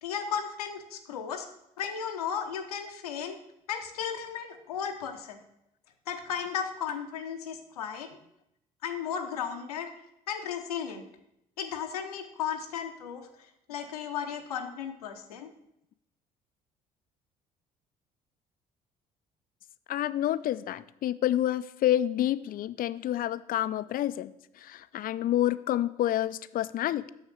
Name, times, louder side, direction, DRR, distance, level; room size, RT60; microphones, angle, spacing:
voice 1, 0.0-1.5 1.8-3.4 3.7-5.4 6.1-8.2 8.8-9.9 10.3-11.1 11.6-13.3 13.7-15.5, left 8 dB, 85° left, 5 dB, 0.8 m, -35 dB
voice 2, 19.9-27.1, left 12 dB, 50° left, 16 dB, 0.5 m, -28 dB
6.5 x 6.3 x 6.4 m, 0.80 s
hypercardioid pair, 55°, 19 cm